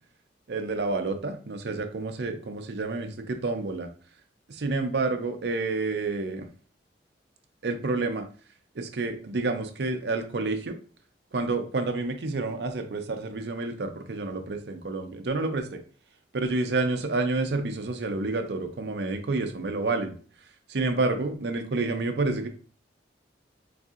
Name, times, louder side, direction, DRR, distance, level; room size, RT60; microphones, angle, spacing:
voice 1, 0.5-3.9 4.5-6.5 7.6-8.3 8.7-10.8 11.3-15.8 16.3-20.2 20.7-22.5, right 3 dB, 65° right, 6 dB, 0.5 m, -29 dB
4.1 x 2.6 x 2.4 m, 0.41 s
head